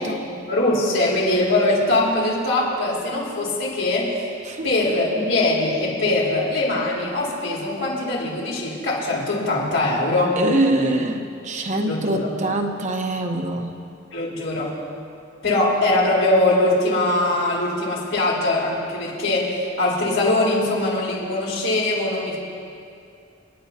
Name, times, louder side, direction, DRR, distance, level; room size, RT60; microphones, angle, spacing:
voice 1, 0.0-4.2 4.6-10.4 11.8-12.3 14.1-14.7 15.4-22.4, left 2 dB, 90° left, -5 dB, 4.2 m, -22 dB
voice 2, 10.4-13.8, right 1 dB, 40° right, 4 dB, 0.9 m, -24 dB
29.5 x 10.5 x 2.8 m, 2.5 s
head